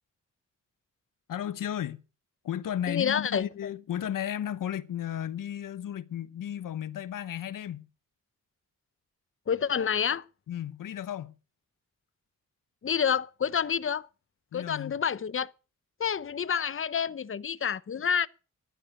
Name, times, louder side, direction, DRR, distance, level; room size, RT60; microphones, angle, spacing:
voice 1, 1.3-2.0 2.4-7.9 10.5-11.3 14.5-15.0, left 10 dB, 85° left, 0.9 m, -34 dB
voice 2, 2.9-3.7 9.5-10.2 12.8-14.1 14.5-15.5 16.0-18.3, left 7 dB, 40° left, 0.8 m, -28 dB
14.0 x 11.5 x 6.5 m
cardioid pair, 75°, 32 cm